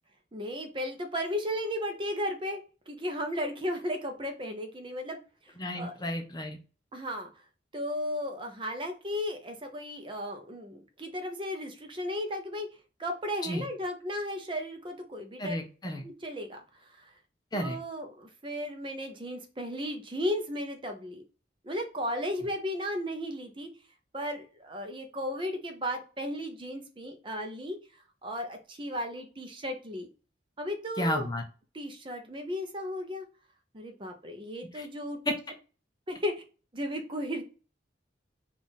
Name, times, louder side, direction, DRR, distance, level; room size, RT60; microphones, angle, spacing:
voice 1, 0.3-2.6 2.9-5.2 5.7-5.9 6.9-7.3 7.7-12.7 13.0-15.6 16.0-17.1 17.5-21.2 21.6-23.7 24.1-27.8 28.2-30.1 30.6-31.3 31.7-33.2 33.7-35.2 36.1-36.3 36.7-37.4, equal, 25° right, 5 dB, 0.6 m, -35 dB
voice 2, 5.6-6.6 13.4-13.7 15.4-16.0 17.5-17.8 31.0-31.4 34.7-34.9 35.3-35.4, left 1 dB, 20° left, 4 dB, 0.5 m, -32 dB
3.6 x 2.4 x 4.0 m, 0.35 s
head